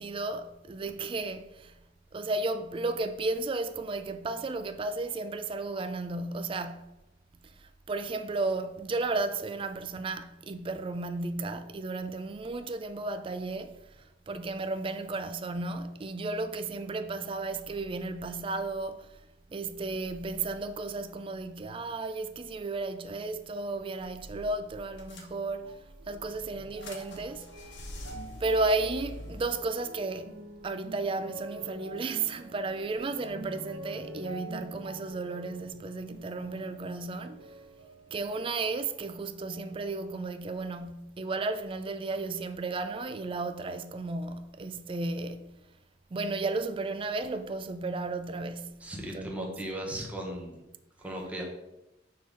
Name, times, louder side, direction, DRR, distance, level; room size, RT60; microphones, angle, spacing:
voice 1, 0.0-1.7 2.1-6.9 7.4-13.8 14.3-19.1 19.5-25.8 26.1-27.7 28.4-30.4 30.6-37.5 38.1-45.5 46.1-49.5, right 3 dB, 30° right, 0.3 m, -34 dB
sound 1, 24.2-24.3 24.5-24.6 25.0-25.8 26.3-29.4, left 1 dB, 75° left, 1.2 m, -44 dB
sound 2, 25.6-39.1 39.4-40.3 41.0-41.1, right 2 dB, 75° right, 1.1 m, -47 dB
voice 2, 48.8-50.6 51.0-51.4, right 1 dB, 10° right, 1.1 m, -37 dB
5.9 x 3.8 x 4.9 m
head